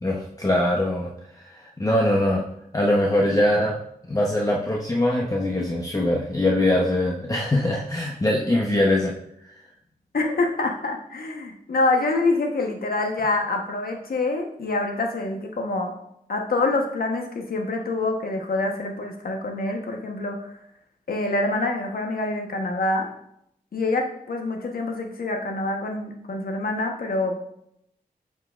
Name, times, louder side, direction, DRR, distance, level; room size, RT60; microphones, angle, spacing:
voice 1, 0.0-1.1 1.8-2.4 2.7-3.8 4.1-9.1, left 1 dB, 20° left, -2 dB, 0.9 m, -22 dB
voice 2, 10.1-15.9 16.3-20.5 21.1-23.1 23.7-27.4, left 2 dB, 75° left, 2 dB, 1.2 m, -26 dB
7.8 x 5.8 x 2.5 m, 0.74 s
cardioid pair, 70°, 16 cm